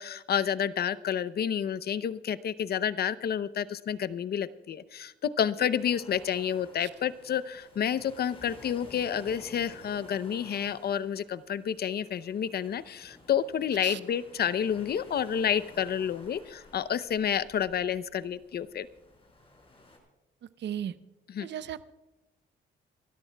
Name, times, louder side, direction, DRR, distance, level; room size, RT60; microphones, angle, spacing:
voice 1, 0.0-18.9 21.3-21.5, left 9 dB, 55° left, 15 dB, 0.7 m, -30 dB
sound 1, 5.6-20.0, left 2 dB, 30° left, 5.4 m, -53 dB
voice 2, 20.6-20.9 21.4-21.9, right 10 dB, 60° right, 13 dB, 0.7 m, -36 dB
29.5 x 13.0 x 2.3 m, 1.0 s
cardioid pair, 90°, 20 cm